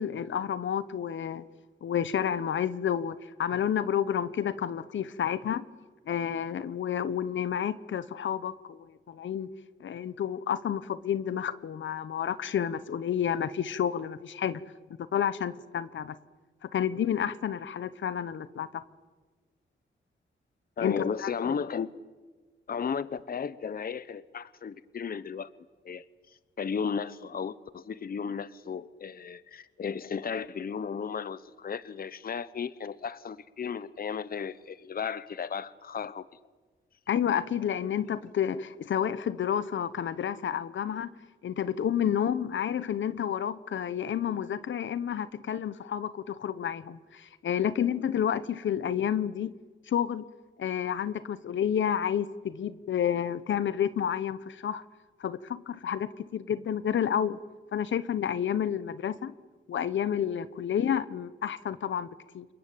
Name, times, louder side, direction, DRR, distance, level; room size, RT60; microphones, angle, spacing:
voice 1, 0.0-1.4 1.8-5.6 6.1-9.5 9.8-14.6 15.1-16.2 16.7-18.8 20.8-21.5 37.1-41.1 41.4-49.5 49.9-50.2 50.6-54.8 55.2-57.4 57.7-59.3 59.7-62.1 62.3-62.5, left 9 dB, 75° left, 15 dB, 1.0 m, -30 dB
voice 2, 20.8-21.9 22.7-25.5 25.8-26.0 26.6-36.2, left 6 dB, 50° left, 16 dB, 0.9 m, -34 dB
28.5 x 23.0 x 9.0 m, 1.3 s
cardioid pair, 90°, 20 cm